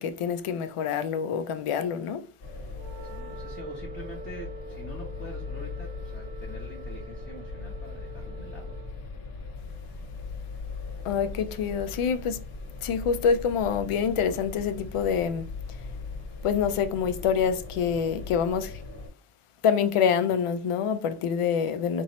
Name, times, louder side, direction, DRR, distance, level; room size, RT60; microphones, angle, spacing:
voice 1, 0.0-2.2 11.0-12.4 12.8-15.5 16.4-18.7 19.6-22.0, left 7 dB, 90° left, 0.7 m, -26 dB
sound 1, 2.4-19.1, left 4 dB, 45° left, 1.3 m, -39 dB
Wind instrument woodwind instrument, 2.7-9.0, right 4 dB, 15° right, 0.9 m, -46 dB
voice 2, 3.1-8.8 11.0-12.2, equal, 25° left, 0.7 m, -45 dB
4.1 x 2.7 x 3.0 m
wide cardioid pair, 160°, 50 cm